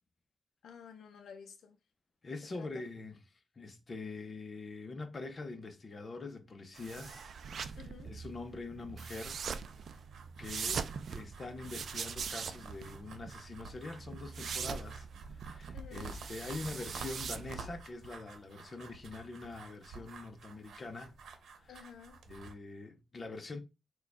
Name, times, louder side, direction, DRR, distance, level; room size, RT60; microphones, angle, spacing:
voice 1, 0.6-1.8 2.5-2.7 7.8-8.1 15.7-16.1 21.7-22.2, left 7 dB, 80° left, 0.5 m, -51 dB
voice 2, 2.2-3.2 3.6-7.3 7.6-9.4 10.4-15.1 15.3-21.2 21.6-21.9 22.3-23.6, left 3 dB, 35° left, 0.7 m, -44 dB
sound 1, 6.8-17.8, right 6 dB, 60° right, 0.4 m, -42 dB
sound 2, 9.3-22.5, right 4 dB, 80° right, 0.9 m, -51 dB
4.6 x 2.3 x 4.7 m
wide cardioid pair, 120°, 0 cm